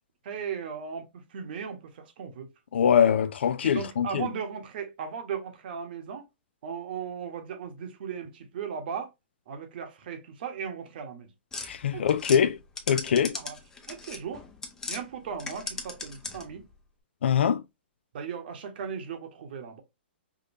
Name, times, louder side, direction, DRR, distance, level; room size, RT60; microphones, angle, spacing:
voice 1, 0.2-2.5 3.6-6.3 6.6-9.1 9.5-11.3 11.9-12.2 13.3-13.6 13.9-14.4 14.9-16.6 18.1-19.8, right 7 dB, 55° right, 1.1 m, -37 dB
voice 2, 2.7-4.3 11.6-12.6 12.9-13.4 17.2-17.6, left 8 dB, 80° left, 0.3 m, -23 dB
sound 1, 11.5-15.0 15.3-16.6, left 4 dB, 10° left, 0.5 m, -38 dB
5.0 x 2.1 x 2.7 m
hypercardioid pair, 145°, 6 cm